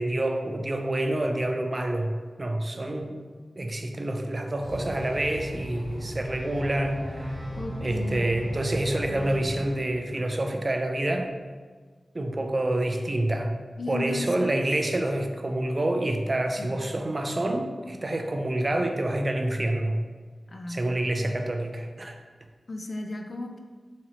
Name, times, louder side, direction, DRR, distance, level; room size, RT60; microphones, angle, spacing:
voice 1, 0.0-3.2 3.6-7.4 7.8-11.3 12.1-13.5 13.9-20.0 20.7-22.2, right 1 dB, 40° right, 4 dB, 0.4 m, -27 dB
sound 1, 4.6-9.7, left 1 dB, 85° left, 0.9 m, -39 dB
sound 2, 6.2-9.8, right 1 dB, 15° right, 0.9 m, -41 dB
voice 2, 7.6-8.2 9.1-9.5 13.8-14.7 16.6-16.7 20.5-20.8 22.7-23.6, left 2 dB, 55° left, 3 dB, 0.4 m, -35 dB
4.0 x 2.9 x 2.8 m, 1.5 s
wide cardioid pair, 65°, 0 cm